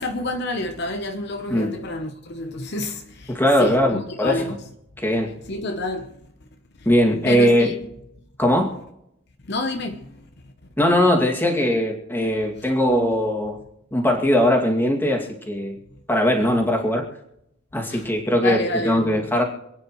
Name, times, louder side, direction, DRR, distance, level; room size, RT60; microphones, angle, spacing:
voice 1, 0.0-4.6 5.5-6.2 7.3-7.7 9.5-10.3 12.6-12.7 17.9-18.1 18.4-19.2, left 2 dB, 50° left, 0.9 m, -29 dB
voice 2, 3.3-4.4 5.0-5.3 6.9-7.7 8.4-8.7 10.8-13.6 13.9-15.8 16.1-17.1 17.7-19.4, equal, 10° left, 2.3 m, -20 dB
27.5 x 9.6 x 3.1 m
head